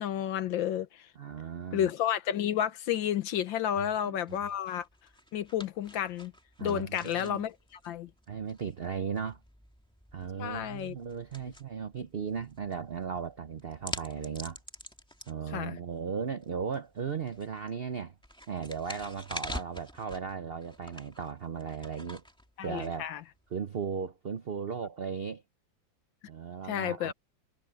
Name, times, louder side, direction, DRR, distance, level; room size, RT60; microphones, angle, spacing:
voice 1, 0.0-1.0 1.7-4.9 5.3-6.3 6.6-7.6 7.8-8.1 10.4-11.0 15.5-15.8 22.6-23.2 26.7-27.1, left 10 dB, 80° left, 1.7 m, -31 dB
voice 2, 1.2-1.9 3.8-4.4 6.6-7.4 8.3-9.4 10.1-14.6 15.3-18.1 18.5-22.2 22.6-23.1 23.5-25.4 26.3-27.1, right 6 dB, 75° right, 0.5 m, -36 dB
sound 1, 4.3-23.5, equal, 5° left, 2.0 m, -47 dB
omnidirectional pair, 2.1 m